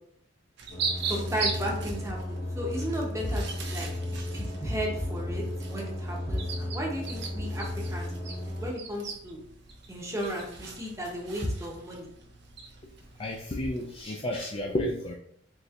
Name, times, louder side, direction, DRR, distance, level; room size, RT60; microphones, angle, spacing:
sound 1, 0.6-14.0, right 5 dB, 55° right, 0.6 m, -40 dB
sound 2, 0.7-8.7, left 1 dB, 85° left, 1.4 m, -35 dB
voice 1, 1.0-9.4 9.9-12.1, equal, 15° right, -1 dB, 0.7 m, -34 dB
voice 2, 13.2-15.1, left 1 dB, 25° left, -1 dB, 0.3 m, -31 dB
4.1 x 3.3 x 2.4 m, 0.68 s
head